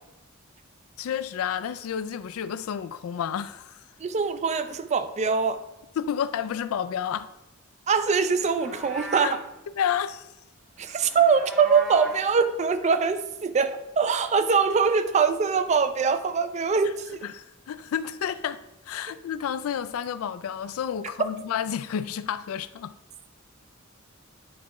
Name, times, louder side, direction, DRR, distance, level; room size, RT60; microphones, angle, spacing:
voice 1, 1.0-3.8 6.0-7.3 9.2-9.3 9.7-10.3 17.2-22.9, left 8 dB, 75° left, 0.3 m, -30 dB
voice 2, 4.0-5.6 7.9-9.4 10.8-17.2, right 5 dB, 30° right, 0.4 m, -23 dB
Livestock farm animals working animals, 8.4-9.5 10.8-12.3, right 2 dB, ahead, 0.7 m, -38 dB
9.3 x 3.5 x 3.0 m
head